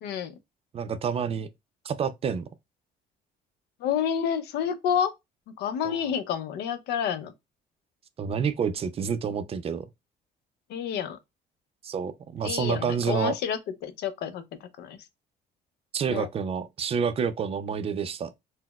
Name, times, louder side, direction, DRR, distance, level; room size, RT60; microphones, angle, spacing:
voice 1, 0.0-0.3 3.8-5.1 5.6-7.3 10.7-11.2 12.4-15.0 16.1-16.3, left 8 dB, 80° left, 0.5 m, -29 dB
voice 2, 0.7-1.5 1.8-2.4 5.8-6.0 8.2-9.9 11.8-13.3 15.9-18.3, right 6 dB, 35° right, 0.4 m, -28 dB
3.9 x 2.0 x 2.2 m
cardioid pair, 110°, 17 cm